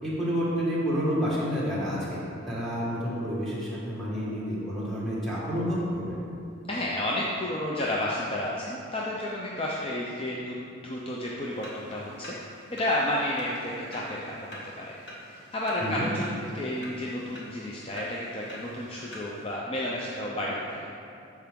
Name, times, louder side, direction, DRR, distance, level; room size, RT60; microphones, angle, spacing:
voice 1, 0.0-6.2 15.8-16.1, equal, ahead, -8 dB, 1.8 m, -29 dB
voice 2, 6.7-12.3 12.7-15.0 15.3-20.9, left 1 dB, 25° left, -4 dB, 0.6 m, -31 dB
sound 1, 11.5-19.5, left 1 dB, 55° left, 1.5 m, -46 dB
12.5 x 4.6 x 3.7 m, 2.6 s
head